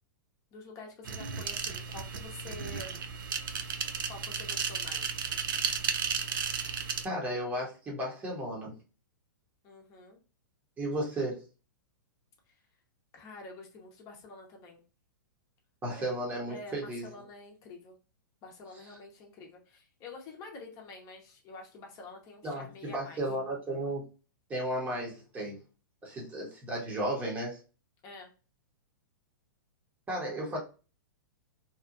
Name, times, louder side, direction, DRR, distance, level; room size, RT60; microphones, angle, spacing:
voice 1, 0.5-2.9 4.1-5.2 9.6-10.2 13.1-14.8 16.0-16.1 16.5-17.9 18.4-23.2 28.0-28.3, left 3 dB, 30° left, 1 dB, 0.8 m, -48 dB
sound 1, 1.0-7.1, right 6 dB, 75° right, 0.4 m, -34 dB
voice 2, 7.0-8.7 10.8-11.4 15.8-17.0 22.4-24.1 24.5-25.6 26.0-27.6 30.1-30.6, right 1 dB, 15° right, -4 dB, 0.9 m, -34 dB
2.8 x 2.3 x 2.5 m, 0.33 s
hypercardioid pair, 135°, 11 cm